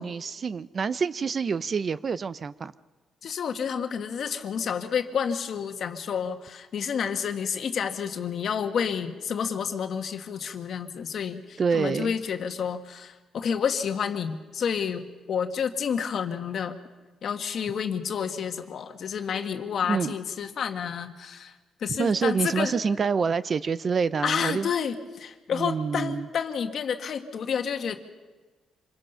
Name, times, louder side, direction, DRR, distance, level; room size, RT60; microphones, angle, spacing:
voice 1, 0.0-2.7 11.6-12.1 19.9-20.1 22.0-24.7 25.5-26.3, right 5 dB, 45° right, 16 dB, 0.6 m, -27 dB
voice 2, 3.2-16.8 17.2-21.5 21.8-22.7 24.2-28.0, left 7 dB, 60° left, 6 dB, 1.6 m, -30 dB
26.5 x 21.0 x 5.6 m, 1.3 s
cardioid pair, 90°, 0 cm